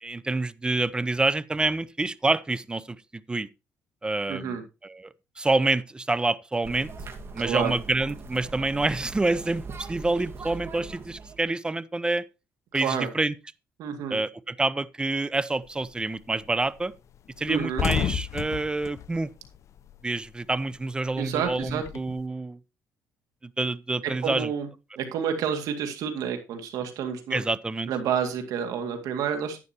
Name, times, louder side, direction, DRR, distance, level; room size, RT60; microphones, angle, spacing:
voice 1, 0.0-3.5 4.0-4.6 4.8-5.0 5.4-6.9 7.3-12.3 12.7-13.3 14.1-16.9 17.4-19.3 20.0-22.6 23.4-24.5 27.3-27.9, right 2 dB, 15° right, 0.6 m, -27 dB
voice 2, 4.3-4.6 7.4-7.7 12.7-13.1 13.8-14.2 17.5-17.9 21.2-21.8 24.0-24.7 25.0-27.4 27.9-29.6, right 7 dB, 75° right, 2.1 m, -29 dB
Sound Walk Back Lane Burnside Scotland, 6.6-11.5, right 4 dB, 40° right, 1.7 m, -41 dB
sound 1, 15.7-16.0 16.4-16.5 16.8-16.9 17.3-20.3 20.5-22.2, left 8 dB, 55° left, 0.6 m, -31 dB
11.0 x 9.6 x 2.9 m
cardioid pair, 90°, 6 cm